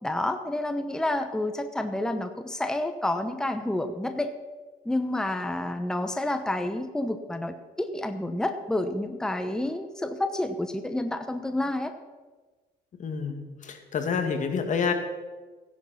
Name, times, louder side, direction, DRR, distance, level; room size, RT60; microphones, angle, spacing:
voice 1, 0.0-4.3 4.8-11.9, left 1 dB, 5° left, 8 dB, 1.0 m, -29 dB
voice 2, 13.0-14.9, left 6 dB, 45° left, 5 dB, 2.2 m, -28 dB
15.5 x 10.5 x 5.8 m, 1.3 s
cardioid pair, 110°, 17 cm